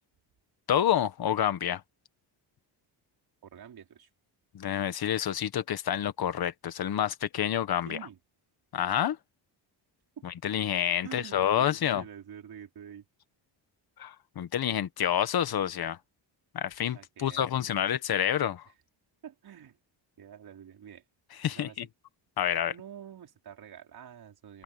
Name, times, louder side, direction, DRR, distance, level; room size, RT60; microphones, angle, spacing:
voice 1, 0.7-1.8 4.5-8.0 8.7-9.2 10.2-12.0 14.0-16.0 16.5-18.7 21.4-21.9 22.4-22.7, left 10 dB, 50° left, 1.5 m, -28 dB
voice 2, 3.4-4.1 7.9-8.2 10.2-10.3 11.0-11.7 11.9-13.1 16.9-17.5 19.2-19.8 20.2-21.0 21.5-21.9 22.7-24.6, right 9 dB, 50° right, 5.1 m, -47 dB
cardioid pair, 150°, 47 cm